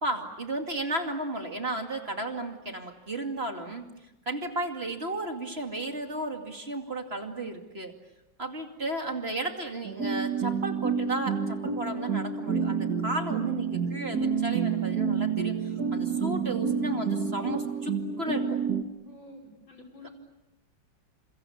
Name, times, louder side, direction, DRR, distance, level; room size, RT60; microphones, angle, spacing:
voice 1, 0.0-3.8 4.3-7.9 8.4-18.6 20.0-20.1, right 2 dB, 30° right, 4 dB, 2.6 m, -34 dB
sound 1, 9.8-18.8, right 6 dB, 55° right, 2.2 m, -29 dB
voice 2, 19.0-20.1, left 2 dB, 85° left, 0 dB, 6.4 m, -49 dB
29.5 x 27.0 x 7.1 m, 0.95 s
omnidirectional pair, 2.1 m